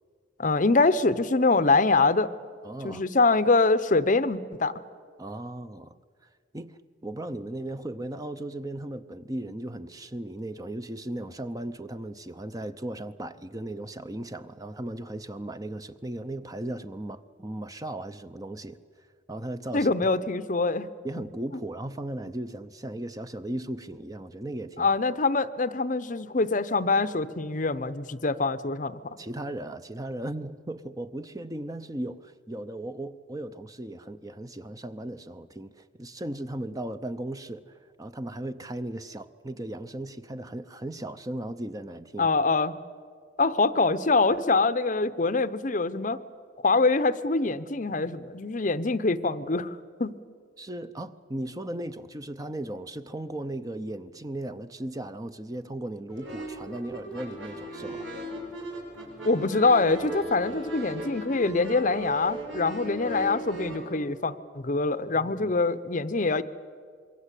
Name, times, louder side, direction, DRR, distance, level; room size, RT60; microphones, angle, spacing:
voice 1, 0.4-2.3 2.8-4.7 19.7-20.9 24.8-29.0 42.2-42.7 43.4-46.2 46.6-50.1 59.2-66.4, left 3 dB, 40° left, 0.7 m, -24 dB
voice 2, 2.6-3.0 5.2-6.0 6.5-18.8 19.3-19.9 21.0-24.9 29.2-42.3 50.6-58.1 64.8-65.6, right 1 dB, 20° right, 0.7 m, -37 dB
sound 1, 56.1-63.8, right 1 dB, 80° right, 7.2 m, -37 dB
26.5 x 22.5 x 8.3 m
head